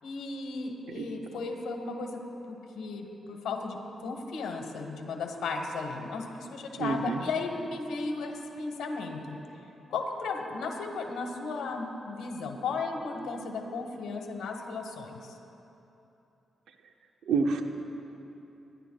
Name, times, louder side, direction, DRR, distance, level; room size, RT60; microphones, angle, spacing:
voice 1, 0.0-2.2 2.5-3.8 4.0-9.4 9.9-15.3, left 4 dB, 85° left, 2 dB, 1.2 m, -35 dB
voice 2, 6.8-7.2 17.3-17.6, right 4 dB, 85° right, 5 dB, 0.6 m, -27 dB
21.5 x 11.0 x 2.3 m, 3.0 s
cardioid pair, 60°, 0 cm